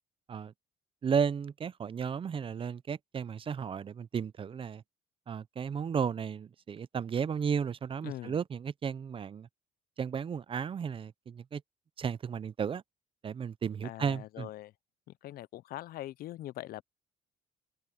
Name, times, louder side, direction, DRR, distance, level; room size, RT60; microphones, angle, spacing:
voice 1, 1.0-4.8 5.3-9.5 10.0-11.6 12.0-12.8 13.2-14.5, right 7 dB, 30° right, 0.5 m, -34 dB
voice 2, 8.0-8.4 13.8-14.7 15.2-16.8, left 14 dB, 60° left, 0.5 m, -42 dB
cardioid pair, 110°, 17 cm